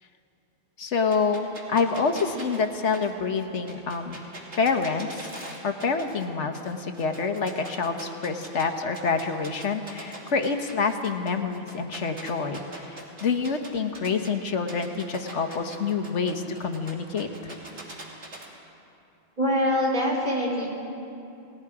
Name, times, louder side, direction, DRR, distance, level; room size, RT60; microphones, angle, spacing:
voice 1, 0.8-4.2 4.6-5.3 5.6-17.3, left 5 dB, 90° left, 6 dB, 1.6 m, -27 dB
sound 1, 1.1-6.3 6.5-8.7 8.9-14.3 14.7-18.5, right 1 dB, 75° right, 3.1 m, -42 dB
voice 2, 19.4-20.7, equal, 40° right, -3 dB, 4.7 m, -24 dB
29.5 x 19.5 x 4.9 m, 2.8 s
omnidirectional pair, 1.2 m